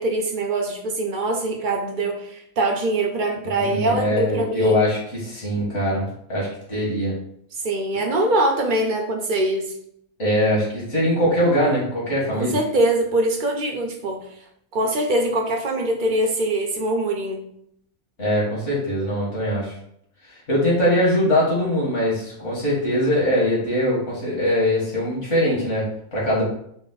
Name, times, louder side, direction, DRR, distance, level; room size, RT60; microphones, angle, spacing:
voice 1, 0.0-4.8 7.6-9.7 12.3-14.2 14.7-17.4, right 1 dB, 55° right, 2 dB, 0.5 m, -23 dB
voice 2, 3.4-7.1 10.2-12.6 18.2-19.8 20.2-26.4, equal, 55° left, -6 dB, 1.9 m, -22 dB
5.0 x 2.0 x 3.9 m, 0.71 s
omnidirectional pair, 1.5 m